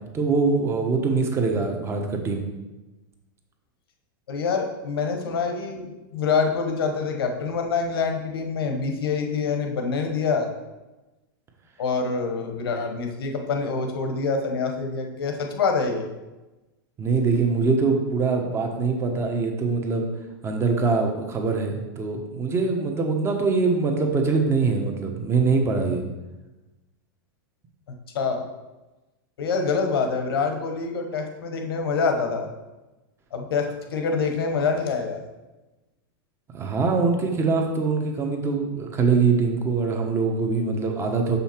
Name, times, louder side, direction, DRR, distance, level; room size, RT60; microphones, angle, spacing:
voice 1, 0.1-2.4 17.0-20.1 20.4-26.0 36.5-41.4, right 4 dB, 20° right, 3 dB, 1.1 m, -23 dB
voice 2, 4.3-10.5 11.8-16.0 28.1-28.5 29.4-32.5 33.3-33.7 33.9-35.2, left 5 dB, 85° left, 4 dB, 1.2 m, -26 dB
6.4 x 5.5 x 4.5 m, 1.1 s
supercardioid pair, 135°, 12 cm